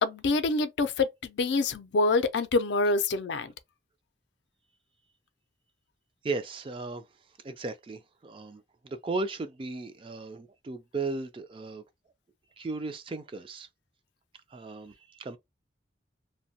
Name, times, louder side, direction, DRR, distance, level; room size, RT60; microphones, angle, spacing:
voice 1, 0.0-3.5, left 3 dB, 75° left, 0.4 m, -26 dB
voice 2, 6.2-7.1 7.4-11.8 12.6-13.7 14.5-15.4, right 3 dB, 30° right, 0.3 m, -36 dB
2.7 x 2.2 x 2.7 m
head